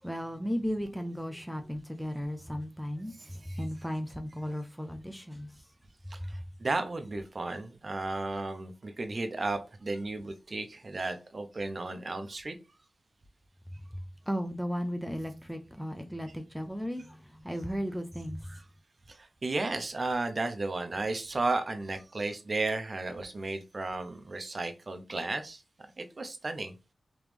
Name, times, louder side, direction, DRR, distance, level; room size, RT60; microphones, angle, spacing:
voice 1, 0.0-5.7 6.2-6.4 13.9-18.6, equal, ahead, 0.5 m, -35 dB
voice 2, 6.1-12.6 19.1-25.6 26.0-26.7, right 2 dB, 45° right, 0.6 m, -34 dB
3.5 x 3.0 x 3.3 m
wide cardioid pair, 70°, 0 cm